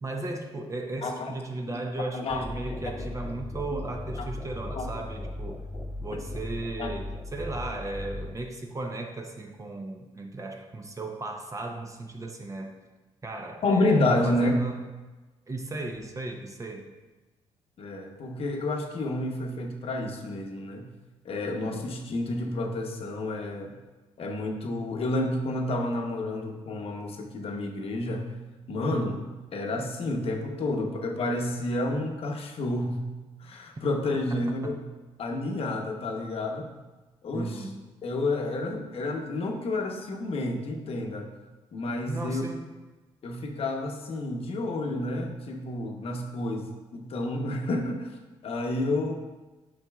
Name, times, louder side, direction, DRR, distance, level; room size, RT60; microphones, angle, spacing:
voice 1, 0.0-5.6 6.0-12.7 13.2-14.8 15.5-16.9 21.4-21.8 34.3-34.7 37.3-37.8 42.0-42.7, right 2 dB, 25° right, 2 dB, 0.7 m, -36 dB
voice 2, 1.0-1.3 2.1-2.9 4.7-4.9 6.8-6.9 13.6-14.5 17.8-20.9 21.2-23.8 24.2-28.2 28.7-33.0 33.4-34.7 35.2-36.7 37.2-37.5 38.0-41.3 41.7-42.4 43.2-48.1 48.4-49.1, left 2 dB, 55° left, 2 dB, 1.0 m, -30 dB
sound 1, 2.3-8.3, left 1 dB, 5° left, 0.5 m, -37 dB
8.7 x 5.5 x 2.4 m, 1.2 s
cardioid pair, 75°, 12 cm